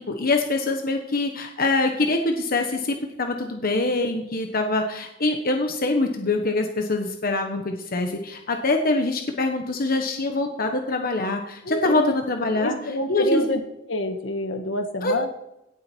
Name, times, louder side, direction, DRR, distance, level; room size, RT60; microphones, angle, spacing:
voice 1, 0.0-12.7 13.1-13.4 15.0-15.3, left 2 dB, 50° left, 4 dB, 1.2 m, -24 dB
voice 2, 11.6-12.2 12.5-13.6 13.9-15.3, left 1 dB, 70° left, 5 dB, 1.6 m, -27 dB
17.5 x 7.6 x 4.6 m, 0.86 s
head